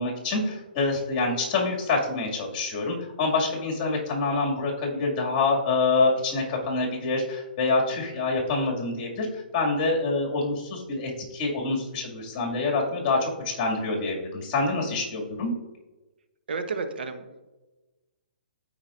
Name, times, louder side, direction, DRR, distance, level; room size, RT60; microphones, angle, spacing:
voice 1, 0.0-9.3 9.5-15.5, left 3 dB, 35° left, -1 dB, 2.3 m, -26 dB
voice 2, 16.5-17.5, right 4 dB, 75° right, 7 dB, 1.0 m, -32 dB
14.0 x 4.9 x 2.6 m, 1.1 s
hypercardioid pair, 145°, 5 cm